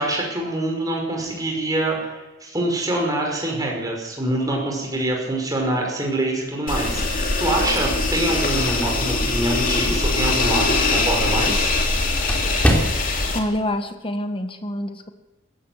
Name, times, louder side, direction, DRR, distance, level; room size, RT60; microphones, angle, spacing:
voice 1, 0.0-11.7, right 1 dB, 15° right, 0 dB, 5.9 m, -25 dB
sound 1, 6.7-13.4, left 3 dB, 40° left, 3.0 m, -22 dB
sound 2, 8.1-13.4, equal, 5° left, 3.6 m, -29 dB
voice 2, 13.3-15.1, left 1 dB, 25° left, 7 dB, 1.6 m, -26 dB
21.0 x 17.0 x 8.1 m, 1.0 s
head